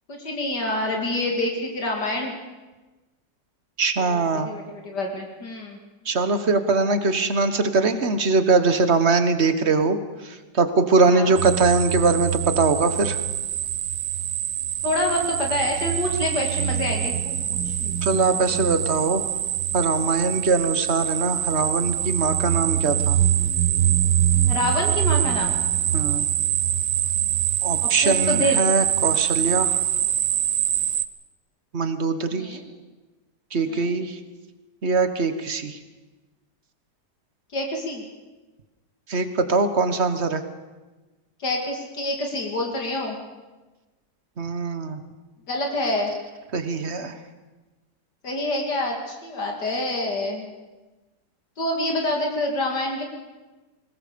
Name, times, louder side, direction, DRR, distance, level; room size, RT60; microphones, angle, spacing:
voice 1, 0.1-2.3 4.0-5.8 11.1-11.4 14.8-17.7 24.5-25.6 27.8-28.6 32.3-32.6 33.7-34.0 37.5-38.0 41.4-43.2 45.5-46.1 48.2-50.5 51.6-53.0, left 1 dB, 70° left, 1 dB, 3.1 m, -27 dB
voice 2, 3.8-4.5 6.0-13.2 17.8-19.2 19.7-23.2 25.9-26.3 27.6-29.8 31.7-32.6 33.5-34.2 34.8-35.8 39.1-40.4 44.4-45.0 46.5-47.2, right 3 dB, 40° right, 10 dB, 1.5 m, -22 dB
sound 1, 11.4-31.0, right 11 dB, 70° right, 1.3 m, -24 dB
21.0 x 20.0 x 6.9 m, 1.2 s
omnidirectional pair, 1.9 m